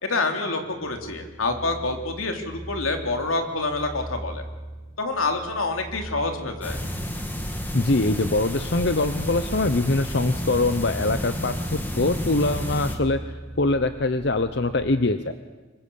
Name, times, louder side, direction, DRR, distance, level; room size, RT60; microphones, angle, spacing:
voice 1, 0.0-4.4 5.0-6.8, left 3 dB, 85° left, 5 dB, 3.3 m, -27 dB
sound 1, 0.6-14.8, right 1 dB, 80° right, 4.3 m, -40 dB
sound 2, 6.6-13.0, equal, 10° left, 2.1 m, -31 dB
voice 2, 7.7-13.2 13.6-15.3, left 2 dB, 55° left, 10 dB, 0.8 m, -23 dB
25.5 x 24.0 x 7.1 m, 1.3 s
head